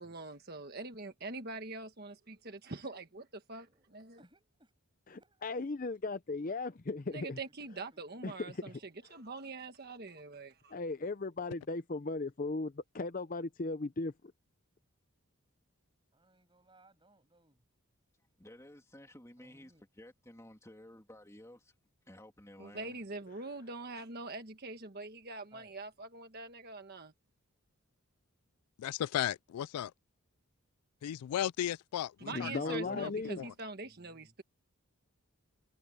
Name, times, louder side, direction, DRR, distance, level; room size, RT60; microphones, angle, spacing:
voice 1, 0.0-4.2 7.1-8.7 9.1-10.7 22.6-27.1 32.2-34.4, right 3 dB, 45° right, 1.4 m, -44 dB
voice 2, 3.5-3.9 4.2-4.7 5.1-5.7 7.3-8.8 16.1-17.6 19.4-19.8 25.5-25.8 33.8-34.3, right 1 dB, 20° right, 6.6 m, -65 dB
voice 3, 5.4-7.4 8.2-8.6 10.7-14.1 32.3-33.4, left 3 dB, 40° left, 0.6 m, -37 dB
voice 4, 18.4-21.7 22.0-23.0, left 1 dB, 15° left, 3.0 m, -54 dB
voice 5, 28.8-29.9 31.0-33.5, left 11 dB, 90° left, 0.3 m, -36 dB
head